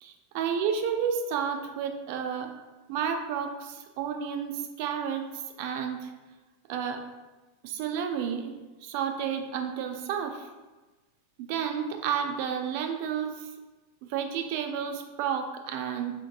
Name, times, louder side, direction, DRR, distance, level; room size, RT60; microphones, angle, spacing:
voice 1, 0.0-2.5 2.9-6.1 6.7-7.0 7.6-10.5 11.4-13.5 14.1-16.1, right 7 dB, 55° right, 5 dB, 0.4 m, -31 dB
4.3 x 2.9 x 2.3 m, 1.2 s
hypercardioid pair, 95°, 0 cm